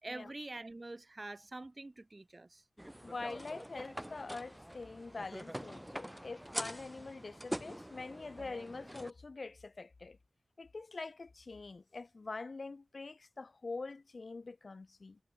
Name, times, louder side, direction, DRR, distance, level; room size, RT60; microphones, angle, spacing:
voice 1, 0.0-2.6, right 2 dB, 30° right, 2.9 m, -46 dB
sound 1, 2.8-9.1, equal, 5° right, 3.5 m, -45 dB
voice 2, 3.0-10.2 10.6-15.2, left 3 dB, 45° left, 2.6 m, -45 dB
wide cardioid pair, 115°, 0 cm